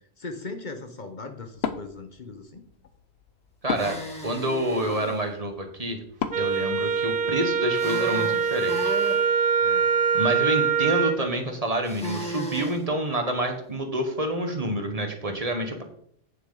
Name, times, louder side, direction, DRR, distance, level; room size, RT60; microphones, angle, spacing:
voice 1, 0.2-2.6 9.6-9.9, left 3 dB, 50° left, 5 dB, 1.0 m, -39 dB
Wood, 1.5-7.6, left 7 dB, 80° left, 1.0 m, -37 dB
voice 2, 3.6-4.0 4.2-6.0 6.4-9.0 10.1-15.8, right 1 dB, 35° right, 4 dB, 1.3 m, -28 dB
sound 1, 3.7-5.2 7.7-9.2 11.8-12.8, equal, 5° left, 1.8 m, -35 dB
Wind instrument woodwind instrument, 6.3-11.2, right 6 dB, 60° right, 0.9 m, -23 dB
9.0 x 7.0 x 3.8 m, 0.65 s
omnidirectional pair, 1.1 m